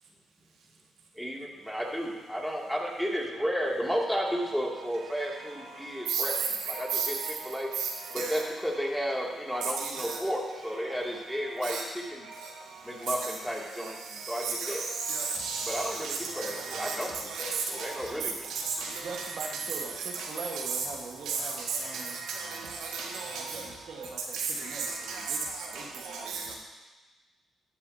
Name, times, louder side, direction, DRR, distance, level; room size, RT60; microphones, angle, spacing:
voice 1, 1.2-6.3 6.7-7.2 7.4-7.7 8.1-11.8 12.1-12.2 12.8-14.8 15.7-17.1 17.4-18.5, equal, 5° left, -3 dB, 2.4 m, -33 dB
voice 2, 6.7-7.1 8.2-8.4 9.5-10.2 11.6-11.8 14.4-14.8 15.1-16.9 17.3-17.9 18.5-18.9 20.2-20.3 21.3-21.4 21.9-22.0 22.3-23.4 24.3-24.7 25.1-25.2 25.6-25.7 26.0-26.5, right 5 dB, 85° right, -2 dB, 1.7 m, -34 dB
voice 3, 18.1-18.4 18.9-22.2 23.2-26.5, right 4 dB, 60° right, 0 dB, 1.5 m, -43 dB
13.0 x 10.5 x 2.8 m, 1.2 s
cardioid pair, 80°, 0 cm